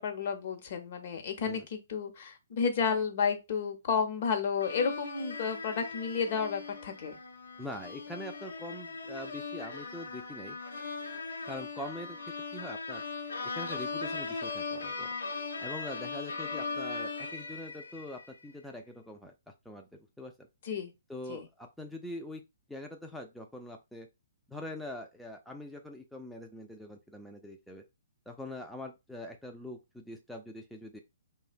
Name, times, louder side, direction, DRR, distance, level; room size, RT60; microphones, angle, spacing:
voice 1, 0.0-7.2 20.6-20.9 21.3-21.5, left 6 dB, 50° left, 0.7 m, -32 dB
sound 1, 4.6-18.3, left 4 dB, 90° left, 0.7 m, -39 dB
voice 2, 7.6-10.6 11.5-12.2 12.5-13.0 13.5-15.1 15.6-19.3 19.7-19.9 20.2-20.5 21.1-22.4 22.7-24.1 24.5-27.8 28.3-31.0, left 1 dB, ahead, 0.3 m, -43 dB
2.7 x 2.1 x 2.4 m
hypercardioid pair, 140°, 0 cm